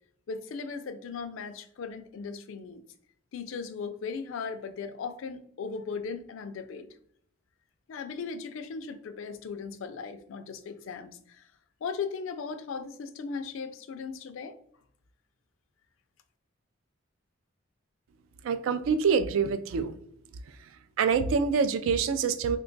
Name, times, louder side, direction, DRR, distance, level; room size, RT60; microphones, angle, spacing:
voice 1, 0.3-2.8 3.3-6.9 7.9-11.5 11.8-14.6, left 5 dB, 75° left, 10 dB, 0.4 m, -37 dB
voice 2, 18.4-20.0 21.0-22.6, right 5 dB, 85° right, 12 dB, 0.3 m, -26 dB
2.8 x 2.2 x 3.8 m, 0.65 s
head